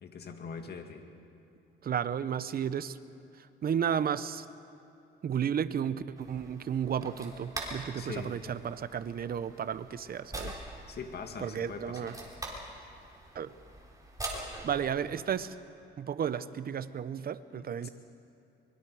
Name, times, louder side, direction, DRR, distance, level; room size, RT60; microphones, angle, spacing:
voice 1, 0.0-1.1 8.0-8.4 10.9-12.1 17.5-17.9, left 5 dB, 55° left, 5 dB, 2.2 m, -42 dB
voice 2, 1.8-3.0 3.4-4.5 5.2-10.6 11.4-12.1 13.3-13.5 14.6-15.5 16.0-17.9, right 8 dB, 50° right, 14 dB, 0.8 m, -33 dB
sound 1, 6.2-15.5, right 1 dB, 15° right, 4.1 m, -44 dB
24.0 x 22.5 x 4.8 m, 2.8 s
cardioid pair, 90°, 20 cm